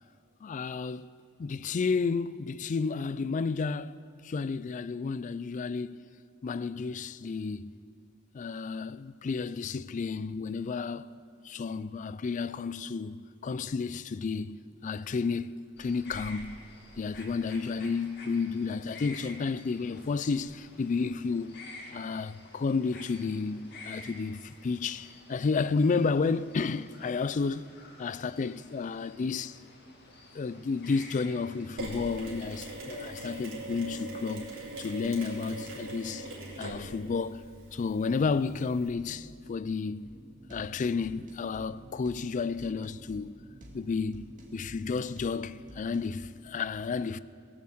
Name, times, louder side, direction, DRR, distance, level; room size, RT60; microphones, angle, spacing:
voice 1, 0.4-1.1 1.4-6.1 6.4-7.7 8.3-11.1 11.4-16.6 17.0-21.6 21.9-27.6 28.0-29.6 30.3-34.5 34.8-36.3 36.6-37.4 37.7-40.1 40.5-43.3 43.7-47.2, left 4 dB, 35° left, 0.3 m, -31 dB
sound 1, 15.8-32.8, left 2 dB, 50° left, 2.1 m, -50 dB
Mechanisms, 31.8-38.9, right 2 dB, 60° right, 3.6 m, -41 dB
sound 2, 40.0-46.3, equal, 35° right, 2.4 m, -50 dB
21.0 x 7.2 x 7.8 m
head